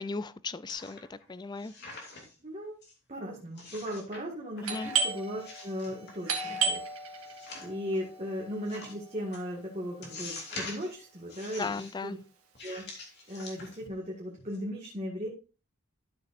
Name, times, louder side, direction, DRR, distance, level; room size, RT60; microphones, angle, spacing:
voice 1, 0.0-1.7 4.6-4.9 11.6-12.2, left 4 dB, 20° left, 16 dB, 0.4 m, -36 dB
sound 1, 0.7-1.2 1.6-2.4 2.8-2.9 3.6-4.2 4.5-5.0 5.4-6.5 7.3-8.0 8.7-8.9 9.3-9.4 10.0-10.9 11.3-11.9 12.5-14.0 14.4-14.6, left 3 dB, 50° left, 2.8 m, -44 dB
voice 2, 2.4-2.7 3.1-6.8 7.1-12.2 12.6-12.8 13.3-15.3, equal, 30° right, -3 dB, 1.8 m, -37 dB
Doorbell, 4.6-10.1, right 5 dB, 85° right, 1.8 m, -35 dB
12.5 x 6.9 x 2.6 m, 0.33 s
head